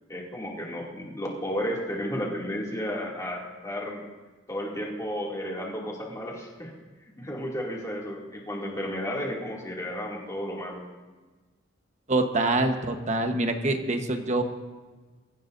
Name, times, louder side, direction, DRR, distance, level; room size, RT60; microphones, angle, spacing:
voice 1, 0.1-4.0 4.5-6.7 7.2-10.8, equal, 15° left, -3 dB, 2.4 m, -33 dB
voice 2, 12.1-14.4, right 2 dB, 40° right, 6 dB, 1.1 m, -25 dB
23.5 x 15.0 x 2.6 m, 1.3 s
head